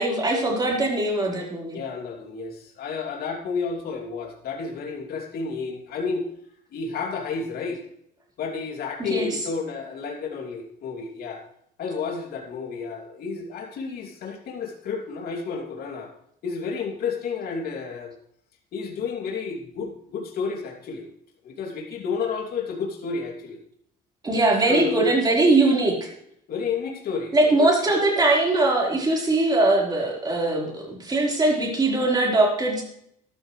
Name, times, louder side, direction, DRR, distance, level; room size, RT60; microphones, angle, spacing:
voice 1, 0.0-1.8 9.0-9.4 24.2-26.1 27.3-32.8, right 2 dB, 25° right, -2 dB, 4.6 m, -21 dB
voice 2, 1.7-6.2 6.7-7.8 8.4-11.4 11.8-16.1 16.4-18.1 18.7-21.1 21.4-23.6 24.7-25.0 26.5-28.0, left 5 dB, 65° left, 1 dB, 2.9 m, -31 dB
13.5 x 12.5 x 3.3 m, 0.71 s
cardioid pair, 110°, 17 cm